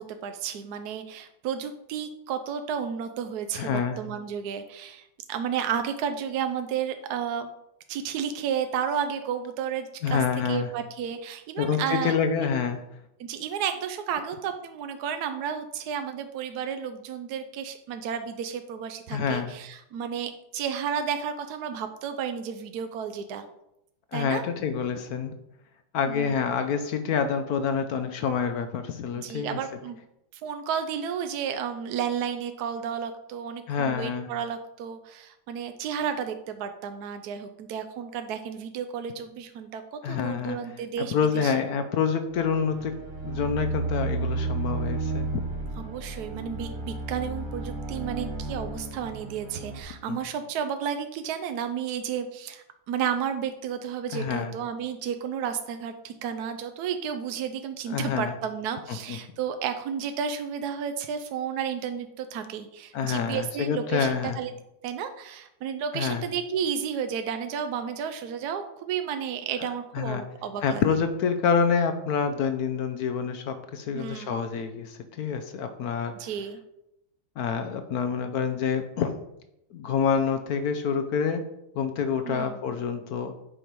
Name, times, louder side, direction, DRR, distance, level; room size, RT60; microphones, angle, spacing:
voice 1, 0.0-7.5 7.9-12.5 13.2-23.5 24.1-24.4 26.1-26.5 29.2-30.0 30.3-41.5 45.8-64.5 64.8-70.8 73.9-74.4 76.1-76.6 82.2-82.6, right 8 dB, 75° right, 8 dB, 0.9 m, -32 dB
voice 2, 3.5-4.0 10.0-10.7 11.6-12.8 19.1-19.6 24.1-25.3 25.9-29.6 33.7-34.3 40.0-40.6 41.0-43.0 43.2-45.4 50.1-50.2 54.1-54.5 57.9-58.3 58.9-59.2 62.9-64.4 65.9-66.3 69.9-70.2 70.6-76.3 77.4-79.1 79.7-81.5 81.7-83.3, left 6 dB, 70° left, 8 dB, 0.9 m, -27 dB
sound 1, 42.4-49.8, right 3 dB, 50° right, 0.6 m, -32 dB
8.3 x 5.2 x 4.6 m, 0.83 s
omnidirectional pair, 2.2 m